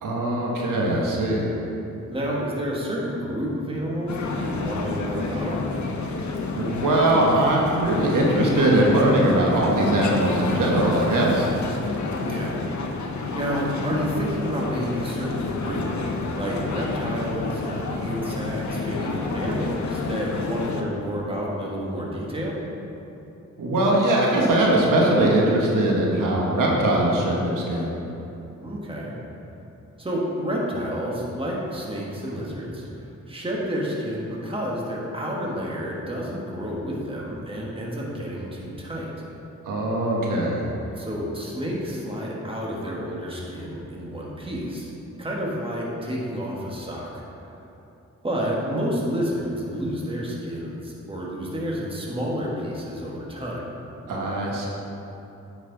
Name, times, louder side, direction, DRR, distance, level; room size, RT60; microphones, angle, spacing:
voice 1, 0.0-1.5 6.5-11.5 23.6-27.9 39.6-40.7 54.1-54.7, right 1 dB, 85° right, -2 dB, 1.6 m, -21 dB
voice 2, 2.1-5.6 12.2-12.6 13.3-15.8 16.4-22.6 28.6-29.1 30.0-39.1 41.0-44.9 45.2-47.2 48.2-53.6, equal, 15° right, -4 dB, 1.8 m, -30 dB
sound 1, 4.1-20.8, left 3 dB, 65° left, 0.9 m, -29 dB
9.4 x 6.1 x 4.1 m, 2.8 s
cardioid pair, 65°, 31 cm